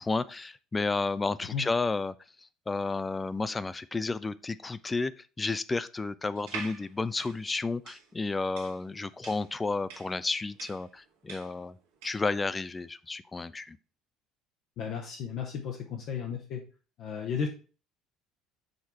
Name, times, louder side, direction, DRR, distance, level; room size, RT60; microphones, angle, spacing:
voice 1, 0.0-11.8 12.0-13.8, left 3 dB, 20° left, 15 dB, 0.4 m, -32 dB
sound 1, 6.4-12.3, right 5 dB, 60° right, 1.4 m, -45 dB
voice 2, 14.8-16.6 17.0-17.5, left 7 dB, 50° left, 1 dB, 0.9 m, -34 dB
6.4 x 4.6 x 4.3 m, 0.36 s
figure-of-eight pair, 60°, 0 cm